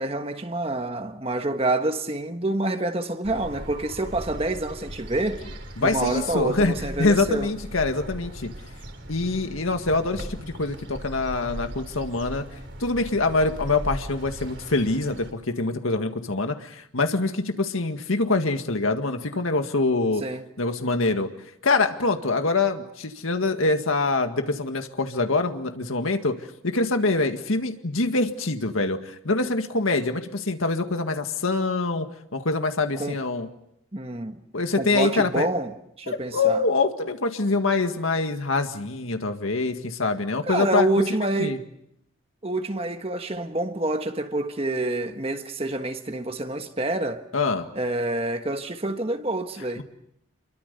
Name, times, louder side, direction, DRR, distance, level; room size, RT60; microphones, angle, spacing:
voice 1, 0.0-5.4 5.8-7.5 20.2-20.4 33.0-33.2 33.9-34.4 34.8-35.7 36.0-36.6 40.4-41.6 42.4-47.2 47.7-49.8, right 2 dB, 30° right, 1.4 m, -27 dB
sound 1, 3.2-15.3, equal, 60° right, 3.9 m, -38 dB
voice 2, 5.8-8.5 9.1-12.5 12.8-20.2 20.6-21.3 21.6-26.4 26.6-32.1 32.3-33.5 34.5-35.5 36.1-40.9 41.4-41.6 47.3-47.7 49.8-49.9, left 3 dB, 90° left, 1.9 m, -25 dB
29.5 x 23.0 x 6.9 m
head